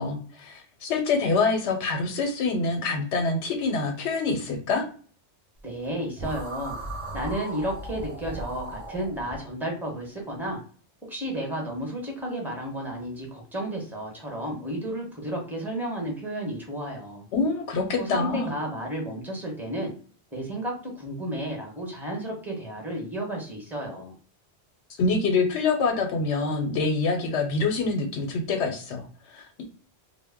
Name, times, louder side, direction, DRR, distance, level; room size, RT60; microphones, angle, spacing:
voice 1, 0.0-4.8 17.3-18.5 25.0-29.6, left 4 dB, 85° left, 3 dB, 0.9 m, -26 dB
voice 2, 5.6-6.8 7.1-10.6 11.0-17.3 18.0-19.9 20.3-24.1, right 1 dB, ahead, 0 dB, 0.7 m, -32 dB
sound 1, 6.2-9.4, right 1 dB, 40° right, 0.5 m, -36 dB
2.1 x 2.1 x 3.4 m, 0.41 s
omnidirectional pair, 1.1 m